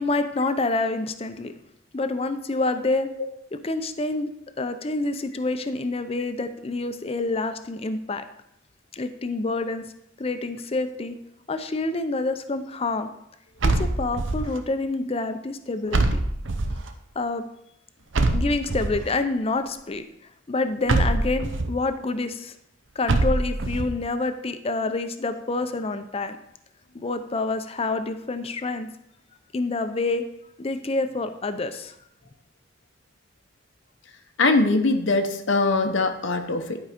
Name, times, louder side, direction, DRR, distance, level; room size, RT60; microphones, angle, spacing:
voice 1, 0.0-1.5 1.9-3.1 3.6-4.3 4.6-8.2 8.9-9.8 10.2-11.2 11.5-13.1 13.6-16.2 17.2-17.4 18.3-20.0 20.5-22.5 23.0-26.4 26.9-28.9 29.5-30.2 30.6-32.0, left 3 dB, 30° left, 9 dB, 0.6 m, -27 dB
sound 1, 13.6-14.6 15.9-16.9 18.1-19.1 20.9-21.7 23.1-23.9, right 2 dB, 75° right, 0.8 m, -23 dB
voice 2, 34.4-36.8, left 3 dB, 75° left, 6 dB, 0.8 m, -22 dB
11.0 x 4.7 x 5.0 m, 0.79 s
head